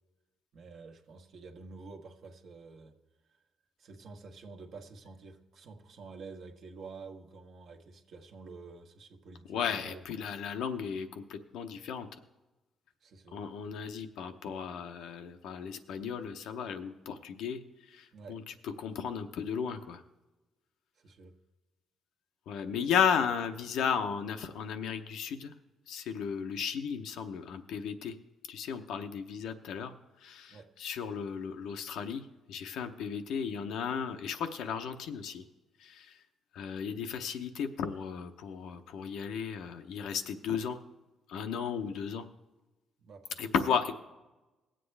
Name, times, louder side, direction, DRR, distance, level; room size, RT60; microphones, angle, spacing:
voice 1, 0.5-3.0 3.3-3.4 3.8-10.0 13.0-13.4 18.1-18.4 21.0-21.4 29.0-29.3 30.5-30.7 42.1-42.2 43.0-43.5, right 4 dB, 65° right, 4 dB, 1.3 m, -49 dB
voice 2, 9.5-12.1 13.3-17.6 17.9-20.0 22.5-25.5 25.9-28.1 28.5-29.9 30.2-35.4 35.8-36.2 36.5-40.8 41.3-42.2 43.4-43.9, left 7 dB, 85° left, 7 dB, 0.8 m, -34 dB
19.0 x 7.6 x 3.3 m, 1.1 s
cardioid pair, 90°, 0 cm